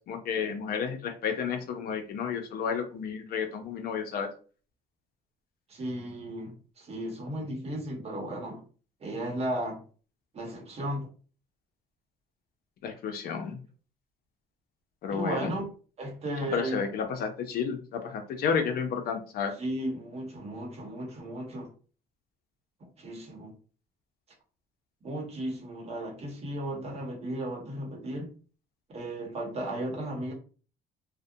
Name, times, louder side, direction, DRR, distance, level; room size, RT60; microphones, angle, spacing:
voice 1, 0.0-4.3 12.8-13.6 15.0-15.5 16.5-19.5, left 6 dB, 65° left, 5 dB, 0.5 m, -31 dB
voice 2, 5.7-8.6 9.0-9.8 10.3-11.1 15.1-15.6 16.0-16.8 19.6-21.7 23.0-23.5 25.0-28.3 28.9-30.3, right 1 dB, 40° right, 2 dB, 0.9 m, -35 dB
2.4 x 2.1 x 2.6 m, 0.39 s
cardioid pair, 110°, 17 cm